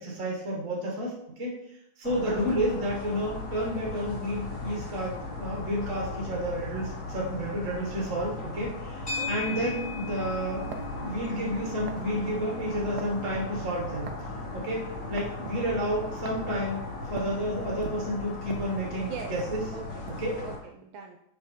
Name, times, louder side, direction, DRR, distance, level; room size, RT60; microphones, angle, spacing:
voice 1, 0.0-1.6 2.0-10.7 11.0-14.1 14.5-16.8 17.1-19.6 20.2-20.3, equal, 40° right, -3 dB, 1.9 m, -31 dB
sound 1, 2.0-20.6, left 2 dB, 60° left, 2.5 m, -38 dB
voice 2, 2.2-2.8 9.2-9.6 18.9-19.3 19.7-20.1 20.4-21.2, right 7 dB, 80° right, 4 dB, 1.4 m, -42 dB
sound 2, 9.1-17.5, left 4 dB, 30° left, 1.9 m, -41 dB
sound 3, 10.7-11.0 11.9-12.1 13.0-13.2 14.1-14.4 15.2-15.4 16.2-16.5 17.2-17.4 17.8-19.1 19.4-19.6 20.1-20.3, right 6 dB, 65° right, 1.1 m, -41 dB
5.5 x 4.8 x 4.3 m, 0.75 s
omnidirectional pair, 2.1 m